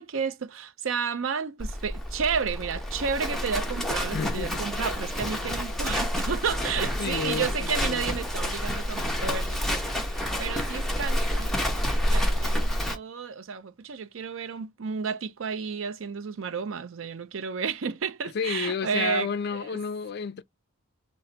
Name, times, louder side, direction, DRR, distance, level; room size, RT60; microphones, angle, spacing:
voice 1, 0.0-19.8, right 6 dB, 70° right, 0.5 m, -32 dB
Livestock farm animals working animals, 1.6-12.9, equal, ahead, 0.8 m, -29 dB
voice 2, 4.1-4.6 5.4-5.6 7.0-8.0 18.3-20.4, left 5 dB, 50° left, 0.4 m, -31 dB
4.1 x 2.0 x 3.9 m
head